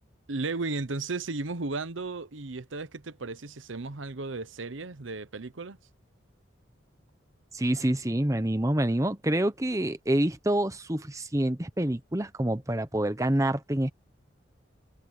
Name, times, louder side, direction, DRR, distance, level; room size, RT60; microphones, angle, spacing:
voice 1, 0.3-5.8, right 3 dB, 90° right, 1.0 m, -34 dB
voice 2, 7.5-13.9, right 1 dB, 15° right, 0.9 m, -27 dB
head